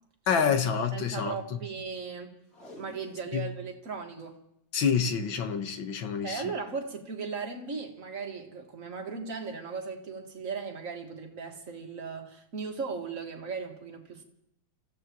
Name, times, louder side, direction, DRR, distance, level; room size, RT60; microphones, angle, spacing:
voice 1, 0.3-1.4 3.3-3.5 4.7-6.5, left 6 dB, 75° left, 6 dB, 2.0 m, -27 dB
voice 2, 0.9-2.4 2.8-4.4 6.0-14.2, right 5 dB, 40° right, 2 dB, 2.1 m, -37 dB
Packing tape duct tape, 2.4-3.6 3.9-4.0 4.2-4.3 4.9-5.2 6.2-6.4 7.0-7.1, left 1 dB, 45° left, 3.1 m, -51 dB
29.5 x 15.5 x 3.0 m, 0.77 s
omnidirectional pair, 2.2 m